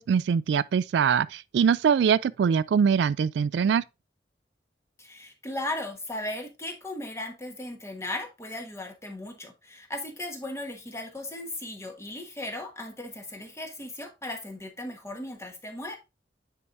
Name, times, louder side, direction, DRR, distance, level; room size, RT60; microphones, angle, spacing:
voice 1, 0.0-3.8, right 7 dB, 75° right, 0.3 m, -23 dB
voice 2, 5.0-16.0, left 1 dB, 15° left, 1.3 m, -37 dB
9.6 x 4.6 x 2.6 m
head